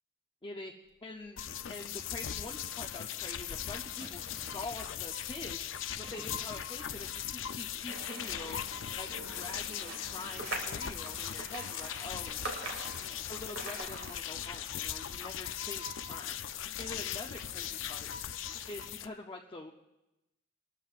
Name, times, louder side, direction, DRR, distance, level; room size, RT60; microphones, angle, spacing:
voice 1, 0.4-0.7 1.0-1.4 1.7-5.6 6.0-8.6 9.0-12.4 13.0-16.5 16.8-18.1 18.7-19.7, left 2 dB, 25° left, 0 dB, 0.6 m, -45 dB
sound 1, 1.1-7.1, right 1 dB, 30° right, 1.7 m, -56 dB
Low Electricity crackling, 1.4-19.1, left 9 dB, 70° left, 0.5 m, -39 dB
sound 2, 7.9-14.2, right 2 dB, 75° right, 2.3 m, -44 dB
23.0 x 13.5 x 2.5 m, 0.96 s
head